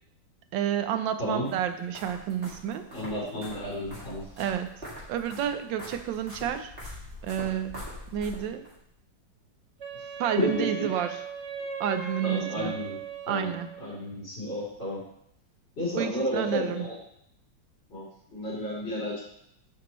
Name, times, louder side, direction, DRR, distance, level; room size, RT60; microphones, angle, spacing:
voice 1, 0.5-2.9 4.4-4.7 5.1-6.7 7.2-7.8 8.1-8.6 10.2-11.2 11.8-12.7 13.3-13.7 16.0-16.9, right 9 dB, 85° right, 9 dB, 1.4 m, -30 dB
voice 2, 1.2-1.5 2.9-4.3 10.4-10.9 12.2-13.0 13.3-13.5 13.8-15.0 15.8-17.0 17.9-19.2, left 1 dB, 35° left, -6 dB, 3.7 m, -32 dB
sound 1, 1.4-8.7, equal, 30° right, 2.5 m, -44 dB
Wind instrument woodwind instrument, 9.8-13.9, right 5 dB, 55° right, 0.8 m, -38 dB
10.0 x 5.1 x 3.1 m, 0.72 s
omnidirectional pair, 2.0 m